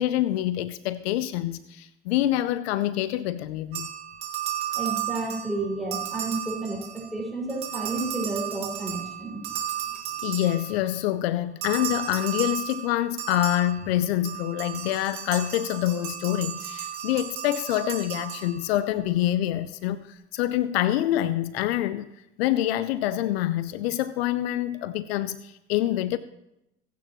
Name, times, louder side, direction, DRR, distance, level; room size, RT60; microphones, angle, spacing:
voice 1, 0.0-3.9 10.2-22.1 22.4-26.2, left 13 dB, 80° left, 0.6 m, -26 dB
sound 1, 3.7-7.2 7.5-10.9 11.6-18.9, right 11 dB, 85° right, 2.4 m, -34 dB
voice 2, 4.7-9.4, right 2 dB, ahead, 6.0 m, -31 dB
23.5 x 9.3 x 3.1 m
hypercardioid pair, 60°, 31 cm